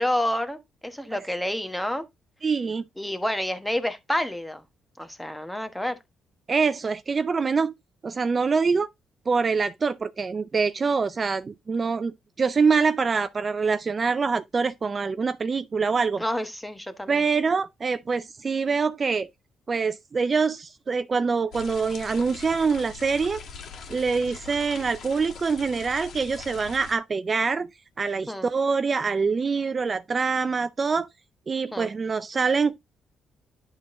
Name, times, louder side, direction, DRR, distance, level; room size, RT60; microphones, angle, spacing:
voice 1, 0.0-2.0 3.0-4.6 5.0-6.0 16.2-17.2 28.3-28.5 31.7-31.9, left 1 dB, 5° left, 1.2 m, -29 dB
voice 2, 2.4-2.9 6.5-7.7 8.0-8.9 9.3-16.2 17.1-19.3 19.7-23.4 23.9-27.7 28.0-31.1 31.5-32.8, right 5 dB, 35° right, 0.4 m, -25 dB
sound 1, 21.5-27.0, left 5 dB, 70° left, 2.0 m, -42 dB
10.5 x 3.8 x 3.8 m
cardioid pair, 90°, 0 cm